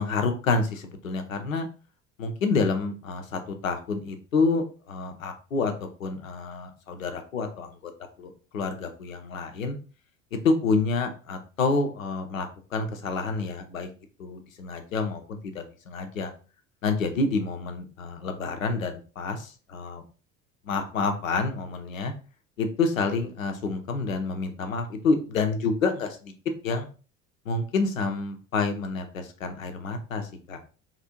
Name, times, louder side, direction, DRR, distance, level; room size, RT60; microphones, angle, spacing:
voice 1, 0.0-1.7 2.2-7.7 8.2-9.8 10.3-13.9 14.2-16.3 16.8-20.0 20.6-22.1 22.6-26.3 26.6-26.9 27.5-30.6, left 4 dB, 85° left, 6 dB, 0.6 m, -28 dB
2.9 x 2.5 x 2.8 m, 0.36 s
figure-of-eight pair, 65°, 39 cm